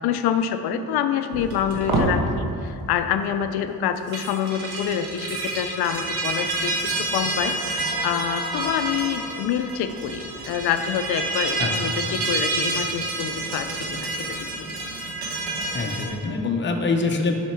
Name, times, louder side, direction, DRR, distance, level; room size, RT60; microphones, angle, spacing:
voice 1, 0.0-14.7, left 9 dB, 85° left, 9 dB, 0.5 m, -27 dB
sound 1, 1.3-2.1 4.0-16.1, right 2 dB, 80° right, 1.1 m, -28 dB
voice 2, 11.6-12.2 15.7-17.3, left 3 dB, 30° left, 3 dB, 0.7 m, -25 dB
5.6 x 5.1 x 4.4 m, 2.5 s
cardioid pair, 90°, 37 cm